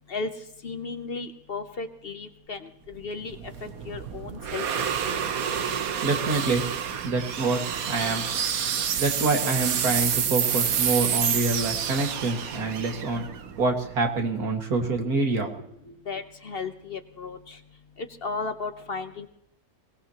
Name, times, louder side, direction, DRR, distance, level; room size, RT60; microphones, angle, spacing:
voice 1, 0.6-3.4 3.6-4.6 5.0-5.2 16.1-17.6 18.0-19.3, left 4 dB, 45° left, 9 dB, 1.0 m, -35 dB
sound 1, 2.9-14.2, right 8 dB, 75° right, 1.4 m, -28 dB
voice 2, 6.0-6.6 7.0-8.3 9.0-13.3 13.6-15.9, right 3 dB, 90° right, 2 dB, 2.5 m, -26 dB
22.0 x 19.0 x 3.0 m, 0.79 s
omnidirectional pair, 1.5 m